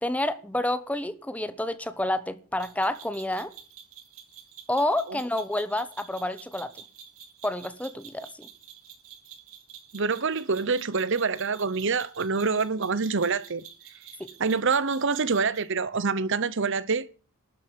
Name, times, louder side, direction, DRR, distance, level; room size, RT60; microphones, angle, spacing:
voice 1, 0.0-3.5 4.7-6.7 7.4-8.5 14.2-14.3, left 1 dB, 5° left, 1.0 m, -29 dB
sound 1, 2.6-15.7, right 8 dB, 80° right, 5.5 m, -49 dB
voice 2, 9.9-13.6 14.4-17.1, right 4 dB, 55° right, 0.9 m, -26 dB
12.5 x 8.5 x 9.5 m
head